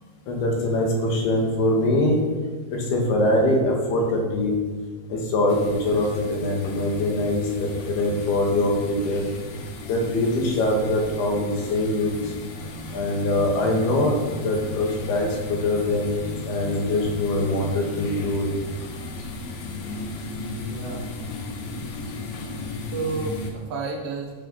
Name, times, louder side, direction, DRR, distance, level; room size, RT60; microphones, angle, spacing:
voice 1, 0.3-2.2 2.7-4.6 5.1-9.2 9.9-12.3 12.9-18.5, left 1 dB, 85° left, 0 dB, 3.9 m, -23 dB
sound 1, 5.5-23.5, left 2 dB, 70° left, 2.7 m, -35 dB
voice 2, 20.4-21.0 22.9-24.3, right 3 dB, 50° right, 0 dB, 1.3 m, -31 dB
13.5 x 6.8 x 5.6 m, 1.3 s
omnidirectional pair, 4.4 m